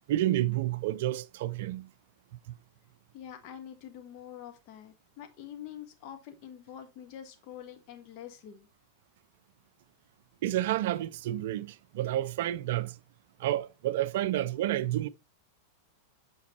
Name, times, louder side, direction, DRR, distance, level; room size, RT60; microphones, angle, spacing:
voice 1, 0.1-1.9 2.5-2.6 10.4-13.0 13.4-15.1, right 13 dB, 55° right, 0.4 m, -30 dB
voice 2, 3.1-8.7, left 10 dB, 45° left, 1.4 m, -46 dB
8.2 x 5.4 x 3.0 m
figure-of-eight pair, 90°, 0 cm